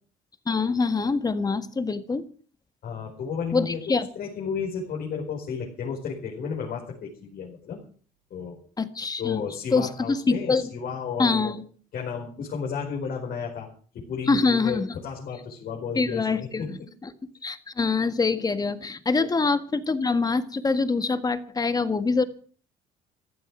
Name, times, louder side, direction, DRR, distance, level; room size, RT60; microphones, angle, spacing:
voice 1, 0.4-2.2 3.5-4.1 8.8-9.4 9.7-10.6 11.2-11.6 14.3-14.9 15.9-17.1 17.4-22.2, left 4 dB, 20° left, 11 dB, 1.7 m, -25 dB
voice 2, 2.8-7.8 8.3-8.6 9.2-11.5 11.9-13.7 13.9-16.7 19.2-19.3, left 6 dB, 60° left, 0 dB, 4.9 m, -33 dB
15.0 x 12.5 x 6.2 m, 0.43 s
cardioid pair, 110°, 17 cm